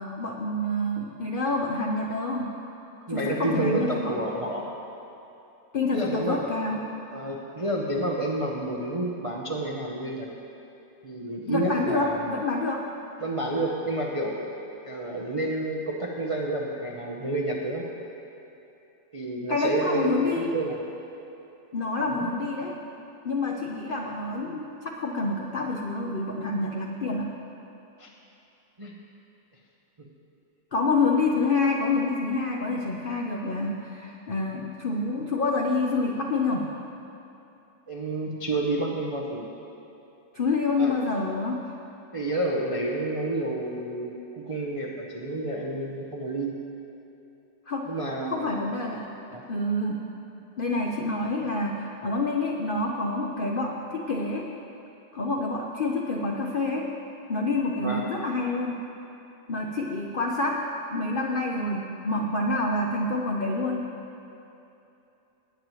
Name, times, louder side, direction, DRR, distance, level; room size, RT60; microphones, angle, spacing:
voice 1, 0.0-2.5 3.1-4.2 5.7-6.8 11.5-12.9 19.5-20.5 21.7-22.7 23.2-27.4 30.7-36.7 40.3-41.7 47.7-48.0 48.3-49.1 49.5-50.1 50.6-54.5 55.1-56.9 57.3-58.8 59.5-63.9, left 2 dB, 80° left, 0 dB, 0.4 m, -27 dB
voice 2, 3.1-4.6 5.9-6.4 7.1-10.3 11.0-12.4 13.2-14.5 14.8-17.8 19.1-20.2 20.5-20.8 22.1-22.3 28.0-28.1 28.8-29.0 37.9-39.4 40.8-40.9 42.1-46.6 47.9-48.5 49.3-49.4 57.8-58.0, right 1 dB, 50° right, -2 dB, 0.3 m, -29 dB
19.0 x 9.0 x 3.1 m, 2.9 s
omnidirectional pair, 2.0 m